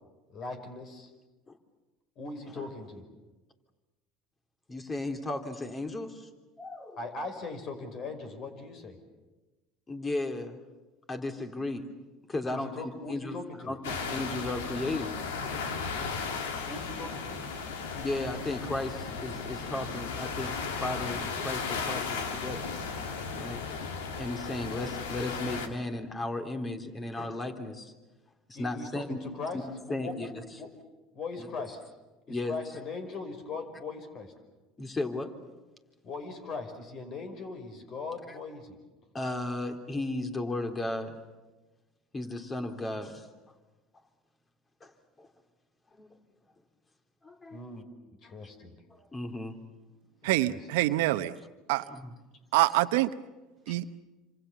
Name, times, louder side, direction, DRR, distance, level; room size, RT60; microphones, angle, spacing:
voice 1, 0.3-1.1 2.2-3.0 7.0-9.0 12.5-13.7 16.7-17.4 28.5-30.3 30.6-30.7 31.1-31.8 32.3-34.3 36.0-38.8 47.5-47.8 48.2-48.7 50.2-50.6, left 3 dB, 50° left, 8 dB, 5.3 m, -40 dB
voice 2, 4.7-6.3 6.6-7.0 9.9-10.6 11.1-11.9 12.3-13.4 13.7-15.2 18.0-22.7 23.4-23.6 24.2-27.9 28.5-29.2 29.5-29.6 29.9-30.3 31.4-31.5 32.3-32.6 34.8-35.3 38.3-38.4 39.1-41.2 42.1-43.3 44.8-44.9 45.2-45.3 46.0-46.1 47.2-47.6 48.2-48.3 48.9-49.6 51.9-52.1, left 2 dB, 25° left, 6 dB, 3.5 m, -35 dB
sound 1, 13.8-25.7, left 5 dB, 85° left, 2.8 m, -35 dB
voice 3, 50.2-51.3 51.7-51.8 52.5-53.1 53.7-54.0, right 17 dB, 75° right, 12 dB, 1.0 m, -25 dB
28.0 x 26.5 x 7.1 m, 1.2 s
hypercardioid pair, 80°, 0 cm